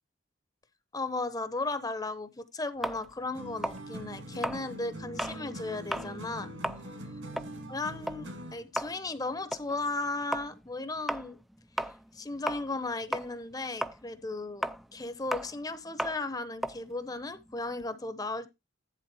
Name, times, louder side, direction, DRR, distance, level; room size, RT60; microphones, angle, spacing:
voice 1, 0.9-6.5 7.7-11.4 12.1-18.5, left 2 dB, 20° left, 0.8 m, -35 dB
sound 1, 2.8-5.4 5.8-6.1 6.5-12.9 13.1-17.9, equal, ahead, 0.4 m, -36 dB
sound 2, 3.3-8.7, right 1 dB, 70° right, 2.5 m, -43 dB
11.0 x 3.9 x 5.5 m
head